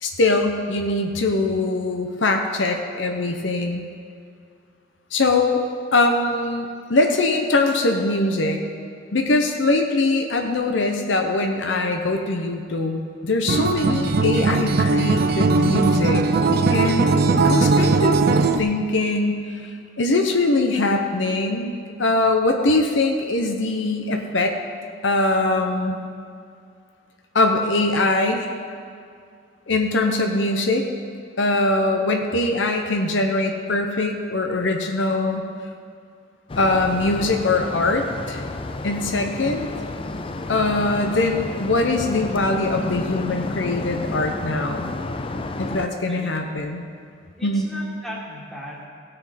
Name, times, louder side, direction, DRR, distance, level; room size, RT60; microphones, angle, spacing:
voice 1, 0.0-3.8 5.1-5.6 5.9-8.6 9.1-16.3 16.7-18.2 18.6-19.7 20.0-24.6 25.0-26.0 27.3-28.5 29.7-30.9 31.4-35.5 36.6-38.4 38.8-39.7 40.5-44.9 45.6-46.8 47.4-47.7, left 2 dB, 75° left, 4 dB, 0.9 m, -22 dB
Acoustic guitar, 13.5-18.6, right 3 dB, 55° right, 0.5 m, -19 dB
sound 1, 36.5-45.9, left 2 dB, 30° left, 0.4 m, -31 dB
voice 2, 47.3-48.9, equal, ahead, -4 dB, 1.9 m, -37 dB
17.0 x 6.6 x 4.3 m, 2.3 s
head